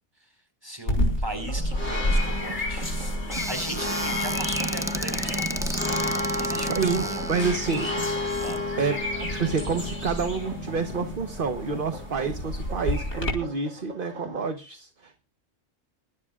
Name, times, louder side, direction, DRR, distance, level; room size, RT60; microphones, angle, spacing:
voice 1, 0.6-2.9 3.5-7.3 8.4-8.6, right 1 dB, 20° right, 6 dB, 5.2 m, -38 dB
sound 1, 0.9-13.3, left 1 dB, 60° left, 5.2 m, -29 dB
sound 2, 1.3-14.5, right 4 dB, 85° right, 2.2 m, -41 dB
Squeak / Cupboard open or close, 3.3-8.6, right 1 dB, 5° right, 0.6 m, -33 dB
voice 2, 6.7-7.9 8.8-9.0 9.3-15.2, right 5 dB, 45° right, 8 dB, 1.3 m, -28 dB
23.5 x 12.5 x 2.5 m, 0.31 s
omnidirectional pair, 1.3 m